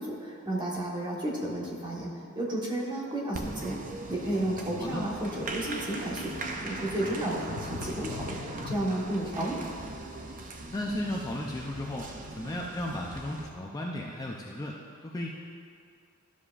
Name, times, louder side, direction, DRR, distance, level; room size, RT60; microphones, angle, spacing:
voice 1, 0.0-3.8 4.1-9.6, right 1 dB, 20° right, -4 dB, 1.3 m, -32 dB
Applause, 3.3-13.5, right 2 dB, 35° right, 0.6 m, -40 dB
Sink (filling or washing), 5.6-9.3, left 4 dB, 80° left, 0.5 m, -42 dB
voice 2, 10.7-14.8 15.0-15.3, left 1 dB, 15° left, -2 dB, 0.5 m, -35 dB
13.0 x 7.2 x 2.5 m, 2.3 s
head